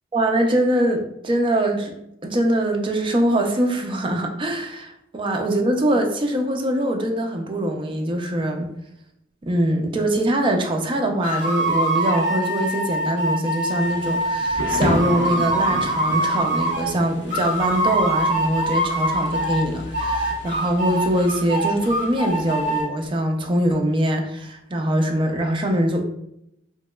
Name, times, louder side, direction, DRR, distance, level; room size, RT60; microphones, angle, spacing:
voice 1, 0.1-1.9 2.2-8.7 9.4-26.0, right 1 dB, 25° right, 3 dB, 0.4 m, -23 dB
sound 1, 11.2-16.9 17.3-19.6 19.9-22.8, right 1 dB, 45° right, 1.2 m, -24 dB
Thunder / Rain, 13.8-22.8, left 2 dB, 65° left, 0.5 m, -33 dB
2.9 x 2.8 x 2.2 m, 0.79 s
head